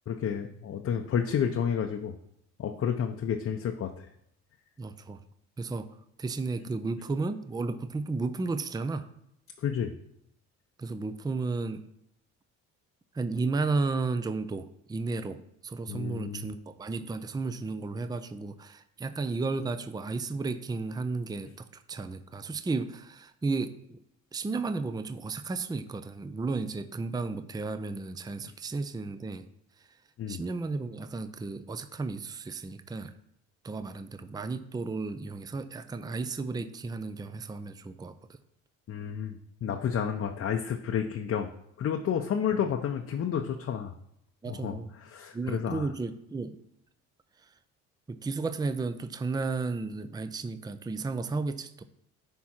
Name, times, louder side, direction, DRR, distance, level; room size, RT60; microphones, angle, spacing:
voice 1, 0.1-2.1 2.6-4.1 9.6-9.9 15.9-16.5 30.2-30.4 38.9-41.5 41.8-43.9 44.5-45.9, left 8 dB, 45° left, 4 dB, 0.7 m, -31 dB
voice 2, 4.8-5.2 5.6-5.9 6.2-9.1 10.8-11.9 13.1-24.0 24.3-29.5 29.8-29.9 30.3-33.1 33.6-38.4 44.4-44.9 45.3-46.6 47.4-47.5 48.1-51.8, right 3 dB, 10° right, 11 dB, 0.5 m, -33 dB
10.5 x 3.6 x 4.4 m, 0.76 s
supercardioid pair, 70°, 34 cm